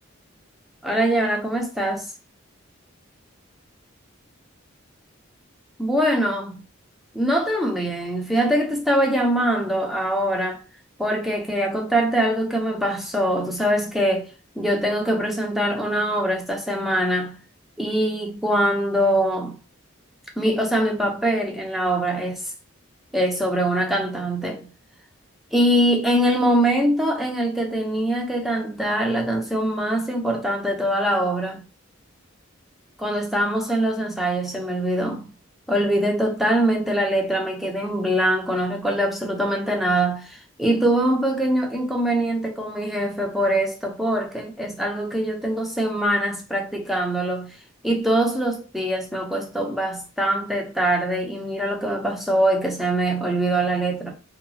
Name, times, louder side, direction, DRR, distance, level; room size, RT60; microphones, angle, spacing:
voice 1, 0.8-2.1 5.8-6.6 7.1-10.6 11.0-14.3 14.6-17.4 17.8-19.6 20.4-22.4 23.1-24.7 25.5-31.6 33.0-35.3 35.7-47.6 47.8-54.1, right 1 dB, ahead, 0.5 m, -23 dB
2.9 x 2.3 x 2.6 m
head